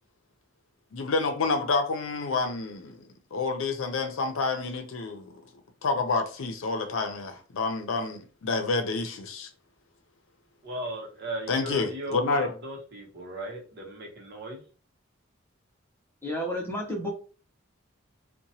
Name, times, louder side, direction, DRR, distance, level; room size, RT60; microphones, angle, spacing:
voice 1, 0.9-3.0 3.3-5.4 5.8-9.5 11.5-12.5, left 3 dB, 80° left, 0.5 m, -28 dB
voice 2, 10.6-14.6, right 1 dB, 55° right, 0.9 m, -37 dB
voice 3, 16.2-17.1, equal, 10° left, 0.7 m, -31 dB
2.8 x 2.2 x 2.7 m
head